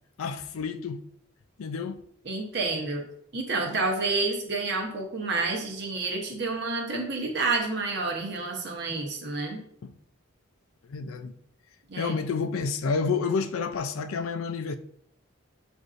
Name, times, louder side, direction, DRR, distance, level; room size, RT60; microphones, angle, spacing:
voice 1, 0.2-1.0 1.6-2.0 3.7-3.8 9.8-9.9 10.9-11.3 11.9-14.8, left 5 dB, 85° left, 0.4 m, -29 dB
voice 2, 2.3-3.0 3.3-9.6 11.9-12.1, right 3 dB, 55° right, 0.9 m, -29 dB
7.7 x 2.6 x 2.5 m
head